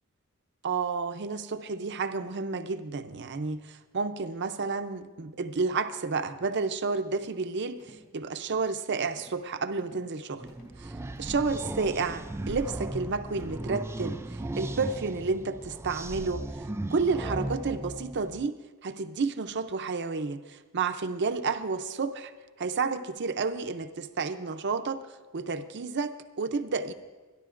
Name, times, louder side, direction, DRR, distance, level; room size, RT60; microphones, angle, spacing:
voice 1, 0.6-7.8 8.1-10.5 10.8-10.9 11.2-14.2 14.6-16.4 16.9-18.5 18.8-20.4 20.7-22.3 22.6-25.0 25.3-26.1 26.4-26.9, right 4 dB, 55° right, 9 dB, 0.6 m, -30 dB
sound 1, 7.1-7.4 7.8-8.1 8.5-8.7 9.2-9.5 9.8-10.1 10.5-10.8 11.1-11.5 11.9-12.2 12.6-12.9 13.4-13.7, equal, 45° left, 3.1 m, -55 dB
sound 2, 10.4-18.5, right 2 dB, 10° right, 0.3 m, -37 dB
26.0 x 10.5 x 2.5 m, 1.3 s
head